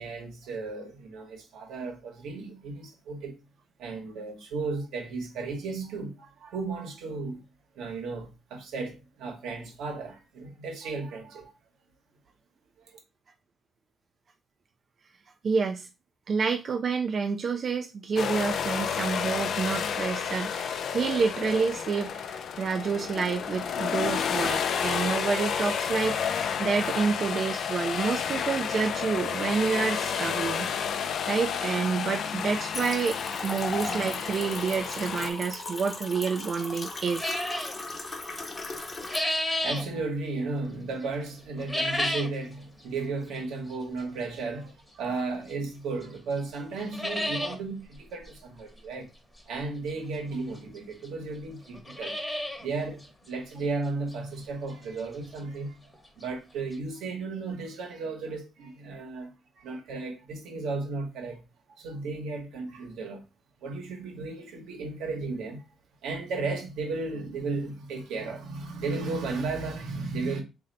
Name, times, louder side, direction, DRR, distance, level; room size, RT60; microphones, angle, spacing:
voice 1, 0.0-3.4 3.8-7.4 7.7-11.5 12.8-12.9 39.6-49.1 49.5-61.4 61.8-63.2 63.6-65.7 66.0-70.4, right 3 dB, 85° right, 1.2 m, -34 dB
voice 2, 15.4-15.9 16.3-30.7 31.0-37.4, right 5 dB, 50° right, 0.4 m, -29 dB
sound 1, 18.2-35.3, left 7 dB, 65° left, 0.4 m, -31 dB
sound 2, 32.7-39.2, left 2 dB, 35° left, 1.0 m, -37 dB
sound 3, 37.2-37.8 38.7-39.9 41.6-42.4 42.8-42.9 43.7-43.8 45.5-45.6 46.0-46.1 46.4-46.5 46.8-47.6 47.9-48.0 48.2-48.3 49.9-50.0 50.8-50.9 51.0-51.1 51.7-52.7 53.0-53.1 53.6-53.7 54.1-54.2 55.9-56.0 56.2-56.3 56.7-56.8, left 1 dB, 10° left, 1.0 m, -31 dB
3.2 x 2.6 x 3.9 m
cardioid pair, 90°, 0 cm